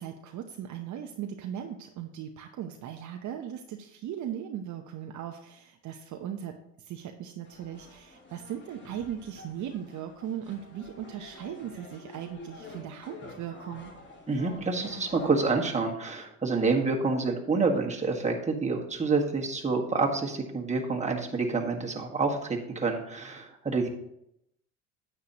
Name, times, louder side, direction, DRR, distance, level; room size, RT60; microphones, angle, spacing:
voice 1, 0.0-6.6 6.8-13.9, right 9 dB, 50° right, 4 dB, 0.8 m, -38 dB
sound 1, 7.4-15.8, left 2 dB, 30° left, 2.2 m, -48 dB
voice 2, 14.3-23.9, right 4 dB, 20° right, 0 dB, 1.7 m, -28 dB
9.4 x 8.2 x 3.0 m, 0.78 s
hypercardioid pair, 75°, 38 cm